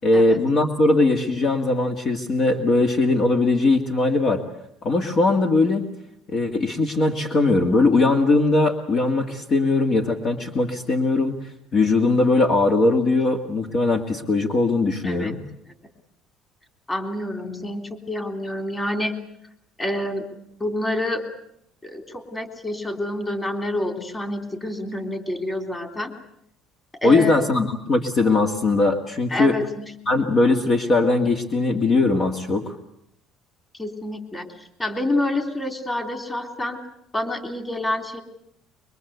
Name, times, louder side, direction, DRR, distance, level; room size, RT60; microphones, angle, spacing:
voice 1, 0.0-4.4 4.8-5.9 6.3-11.4 11.7-15.4 27.0-29.6 30.1-32.8, left 3 dB, 40° left, 4 dB, 2.1 m, -20 dB
voice 2, 16.9-19.2 19.8-20.3 20.6-21.2 21.8-26.1 27.0-27.4 29.3-29.9 33.8-34.5 34.8-36.8 37.1-38.2, left 1 dB, 15° left, 6 dB, 3.5 m, -28 dB
23.5 x 23.5 x 8.2 m, 0.74 s
cardioid pair, 120°, 0 cm